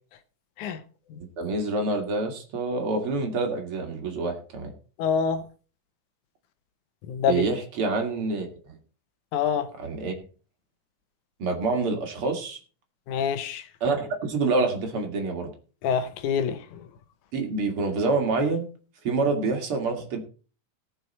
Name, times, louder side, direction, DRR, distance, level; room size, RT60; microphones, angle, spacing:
voice 1, 1.4-4.7 7.3-8.8 9.8-10.1 11.4-12.6 13.8-15.5 17.3-18.7 19.0-20.2, right 3 dB, 50° right, 2.7 m, -27 dB
voice 2, 5.0-5.4 7.1-7.4 9.3-9.7 13.1-13.6 15.8-16.8, left 7 dB, 80° left, 2.4 m, -26 dB
18.5 x 6.4 x 4.2 m
omnidirectional pair, 3.5 m